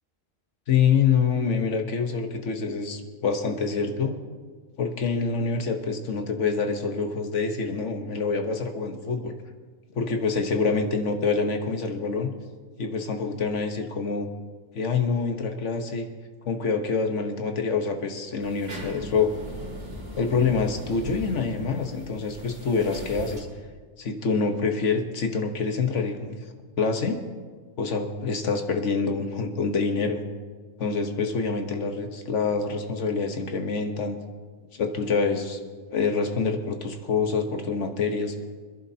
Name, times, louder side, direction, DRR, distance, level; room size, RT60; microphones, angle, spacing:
voice 1, 0.7-4.1 4.8-9.3 9.9-12.3 12.8-14.3 14.7-16.1 16.4-19.3 20.2-23.5 24.0-26.4 26.8-27.2 27.8-30.2 30.8-34.2 34.8-35.6 35.9-38.3, left 5 dB, 80° left, 5 dB, 1.4 m, -26 dB
sound 1, 18.4-23.4, right 1 dB, 55° right, 2.9 m, -39 dB
26.0 x 11.0 x 2.8 m, 1.5 s
omnidirectional pair, 1.2 m